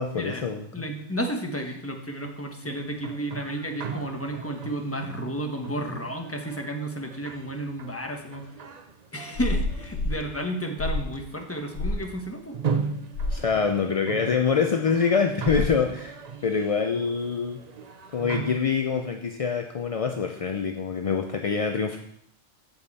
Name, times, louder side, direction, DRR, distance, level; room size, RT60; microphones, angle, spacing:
voice 1, 0.0-0.7 13.3-17.6 18.1-22.0, left 5 dB, 45° left, 4 dB, 0.4 m, -25 dB
voice 2, 0.7-8.5 9.1-12.6, right 1 dB, 10° left, 3 dB, 1.1 m, -32 dB
sound 1, 2.6-18.6, right 6 dB, 45° right, 0.6 m, -38 dB
sound 2, 9.3-10.2 10.8-11.2 11.7-12.0 13.1-13.4 15.5-15.8, left 2 dB, 85° left, 1.2 m, -28 dB
14.0 x 5.4 x 4.1 m, 0.71 s
omnidirectional pair, 1.3 m